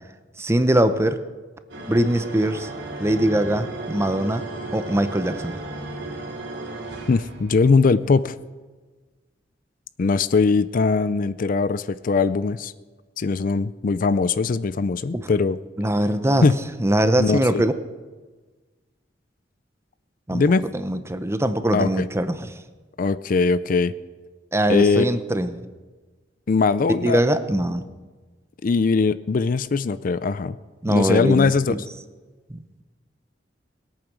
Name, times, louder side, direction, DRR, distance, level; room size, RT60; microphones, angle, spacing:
voice 1, 0.4-1.2 1.9-2.7 3.0-4.4 4.7-5.6 15.1-15.3 15.8-16.5 16.8-17.7 20.3-20.4 20.7-22.5 24.5-25.6 27.0-27.9 30.8-31.8 32.5-32.8, right 1 dB, 15° right, 11 dB, 0.7 m, -22 dB
sound 1, 1.7-7.7, right 2 dB, 70° right, 2.7 m, -34 dB
voice 2, 7.1-8.4 10.0-12.7 13.2-15.6 16.4-16.6 17.2-17.6 20.3-20.6 21.7-22.1 23.0-23.9 24.7-25.1 26.5-27.2 28.6-30.6 30.9-31.7, left 4 dB, 50° left, 15 dB, 0.4 m, -20 dB
20.5 x 8.8 x 6.2 m, 1.3 s
head